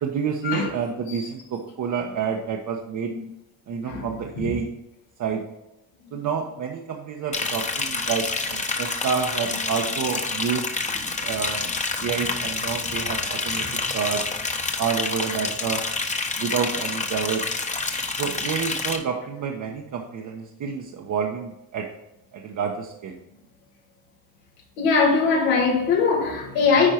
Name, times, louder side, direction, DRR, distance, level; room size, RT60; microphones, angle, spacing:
voice 1, 0.0-3.1 3.7-4.7 5.2-5.4 6.1-10.7 11.2-11.7 12.0-14.2 14.8-15.8 16.4-17.4 18.2-21.9 22.3-23.2, right 6 dB, 50° right, 1.0 m, -28 dB
Liquid, 7.3-19.0, left 3 dB, 20° left, 1.0 m, -28 dB
voice 2, 24.8-26.9, left 4 dB, 90° left, 2.4 m, -20 dB
10.0 x 4.5 x 4.4 m
cardioid pair, 105°, 39 cm